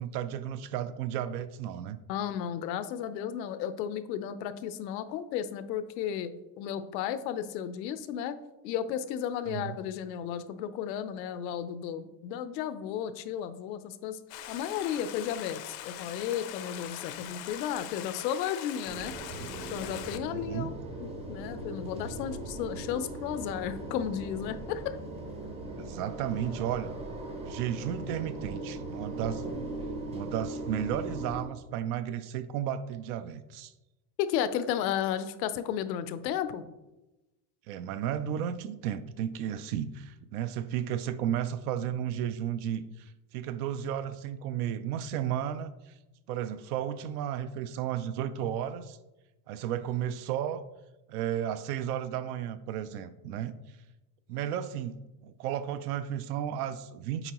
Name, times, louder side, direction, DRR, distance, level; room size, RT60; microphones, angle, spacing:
voice 1, 0.0-2.0 9.5-9.8 19.4-19.5 20.2-20.7 25.8-27.0 27.5-29.4 30.1-33.7 37.7-46.0 46.3-49.0 49.5-50.6 51.1-53.8 54.3-57.3, right 10 dB, 65° right, 12 dB, 0.5 m, -33 dB
voice 2, 2.1-8.4 8.6-14.2 14.5-19.2 19.7-25.0 34.2-36.6, left 9 dB, 85° left, 12 dB, 0.7 m, -33 dB
Stream, 14.3-20.2, left 11 dB, 50° left, 0.5 m, -42 dB
sound 1, 18.8-31.4, right 2 dB, 15° right, 0.6 m, -39 dB
8.0 x 4.5 x 2.9 m, 1.0 s
supercardioid pair, 155°, 50 cm